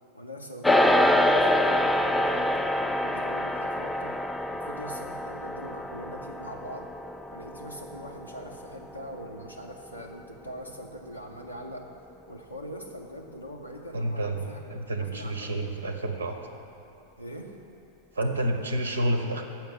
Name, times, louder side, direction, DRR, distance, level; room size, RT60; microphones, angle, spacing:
voice 1, 0.1-4.2 4.5-6.9 7.3-11.9 12.3-14.7 15.0-15.6 17.2-17.6, equal, 90° left, -1 dB, 0.6 m, -42 dB
sound 1, 0.6-10.2, left 1 dB, 5° left, 0.4 m, -26 dB
voice 2, 13.9-16.4 18.1-19.4, right 1 dB, 75° right, 5 dB, 0.7 m, -29 dB
7.1 x 5.8 x 7.6 m, 2.7 s
figure-of-eight pair, 90°, 0 cm